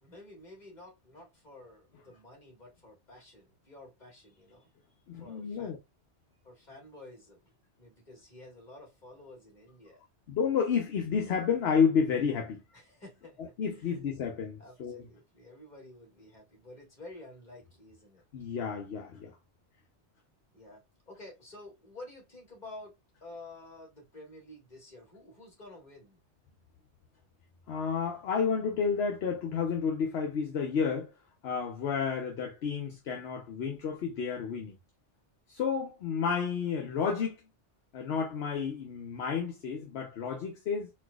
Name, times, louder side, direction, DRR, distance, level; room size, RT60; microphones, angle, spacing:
voice 1, 0.0-5.7 6.4-10.0 12.7-14.0 14.6-18.2 20.5-26.2, left 2 dB, 40° left, 1.8 m, -51 dB
voice 2, 5.1-5.8 10.3-12.6 13.4-15.1 18.3-19.4 27.7-31.1 31.4-34.7 35.5-37.4 37.9-40.9, left 6 dB, 65° left, 0.9 m, -31 dB
4.3 x 2.5 x 2.3 m
omnidirectional pair, 1.2 m